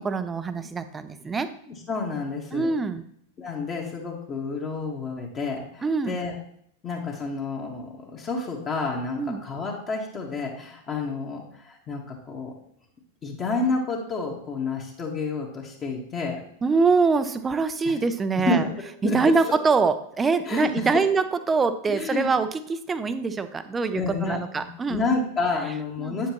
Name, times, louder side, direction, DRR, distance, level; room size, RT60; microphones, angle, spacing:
voice 1, 0.0-1.5 2.5-3.0 5.8-6.2 9.2-9.4 16.6-18.6 19.0-25.0 26.0-26.2, right 4 dB, 15° right, 11 dB, 0.6 m, -24 dB
voice 2, 1.7-2.7 3.4-6.3 6.8-12.5 13.2-16.4 17.8-18.0 18.4-18.7 19.0-19.2 19.5-19.6 20.4-21.0 21.9-22.3 23.9-26.3, left 3 dB, 25° left, -1 dB, 1.5 m, -30 dB
9.2 x 7.3 x 3.0 m, 0.67 s
figure-of-eight pair, 90°, 0 cm